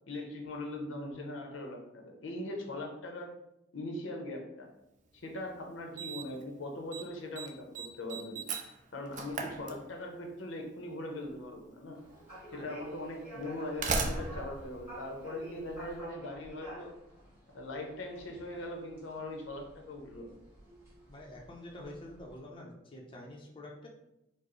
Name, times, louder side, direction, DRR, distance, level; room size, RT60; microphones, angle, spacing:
voice 1, 0.1-3.3 3.7-4.7 5.1-8.4 8.9-12.0 12.5-16.9 17.5-20.4, left 1 dB, 90° left, 2 dB, 0.7 m, -41 dB
Slam, 5.2-5.3 6.0-6.4 6.7-7.1 7.4-10.3 11.4-11.5 12.4-12.5 13.4-15.8, right 4 dB, 40° right, 0.4 m, -37 dB
sound 1, 11.9-22.4, right 1 dB, 10° right, 1.5 m, -50 dB
voice 2, 21.1-23.9, left 1 dB, 25° left, -1 dB, 0.6 m, -47 dB
4.6 x 2.0 x 3.0 m, 0.86 s
head